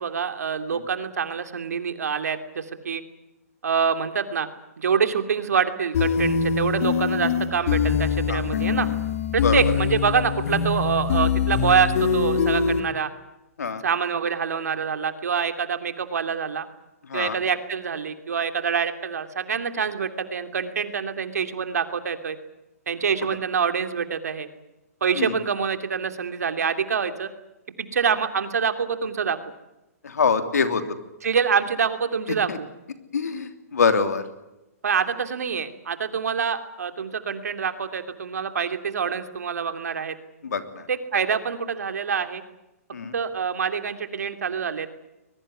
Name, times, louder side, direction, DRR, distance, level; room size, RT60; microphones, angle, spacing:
voice 1, 0.0-3.0 3.6-4.5 4.8-8.9 9.3-13.1 13.8-16.7 17.1-22.4 22.9-24.5 25.0-27.3 27.8-29.4 31.2-32.7 34.8-40.2 40.9-42.4 43.1-44.9, right 6 dB, 80° right, 8 dB, 2.9 m, -26 dB
sound 1, 5.9-12.8, left 6 dB, 60° left, 3.5 m, -23 dB
voice 2, 30.0-30.8 32.5-32.6 33.1-34.2 40.4-40.8 42.9-43.1, left 5 dB, 80° left, 8 dB, 3.2 m, -24 dB
22.0 x 21.5 x 9.8 m, 0.94 s
hypercardioid pair, 135°, 9 cm